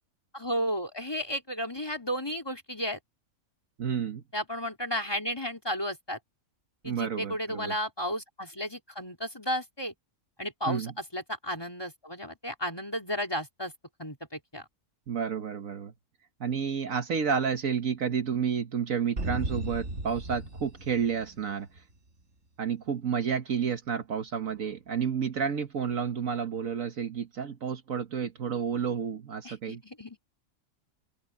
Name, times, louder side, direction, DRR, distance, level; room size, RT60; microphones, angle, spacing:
voice 1, 0.3-3.0 4.3-6.2 6.8-9.9 10.4-13.7 14.0-14.6 29.4-30.2, equal, 15° left, 3.7 m, -33 dB
voice 2, 3.8-4.2 6.8-7.7 10.7-10.9 15.1-15.9 16.4-21.7 22.6-29.8, right 7 dB, 65° right, 1.6 m, -30 dB
sound 1, 19.2-21.9, right 2 dB, 50° right, 2.6 m, -36 dB
open air
omnidirectional pair, 1.5 m